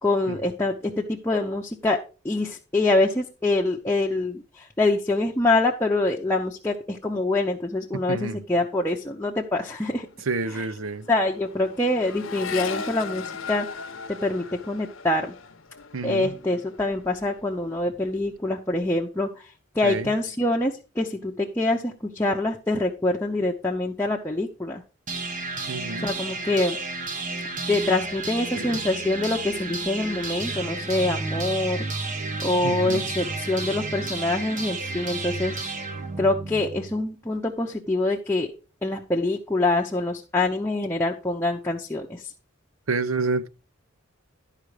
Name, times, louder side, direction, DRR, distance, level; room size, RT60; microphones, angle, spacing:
voice 1, 0.0-2.0 2.2-10.1 10.5-10.6 11.1-13.8 14.2-15.3 16.0-19.3 19.7-24.8 26.0-26.8 27.7-31.9 32.4-35.6 36.2-38.5 38.8-42.2, left 2 dB, 10° left, 0.8 m, -25 dB
voice 2, 7.9-8.4 10.3-11.1 15.9-16.3 19.8-20.1 25.7-26.1 28.5-28.8 32.6-33.0 42.9-43.5, right 3 dB, 85° right, 0.7 m, -29 dB
Accelerating revving vroom, 9.4-9.7 9.9-17.4 17.8-18.4, left 5 dB, 70° left, 0.8 m, -38 dB
sound 1, 25.1-37.0, right 3 dB, 40° right, 1.1 m, -32 dB
12.0 x 5.0 x 4.9 m
head